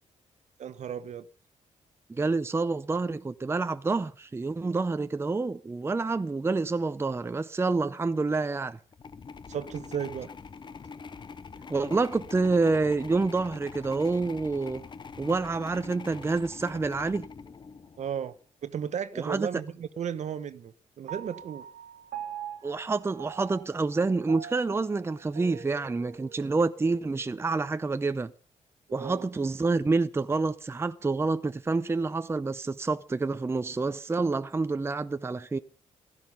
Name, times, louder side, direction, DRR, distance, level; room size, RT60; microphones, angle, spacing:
voice 1, 0.6-1.3 9.5-10.3 18.0-18.3 18.6-21.7 28.9-29.2, right 8 dB, 60° right, 1.0 m, -34 dB
voice 2, 2.1-8.8 11.7-14.8 15.2-17.3 19.1-19.5 22.6-28.3 28.9-35.6, right 3 dB, 20° right, 0.6 m, -28 dB
sound 1, 8.9-18.3, left 5 dB, 35° left, 0.8 m, -44 dB
Piano, 21.1-27.8, right 9 dB, 90° right, 1.5 m, -44 dB
15.5 x 12.5 x 5.4 m
cardioid pair, 105°, 13 cm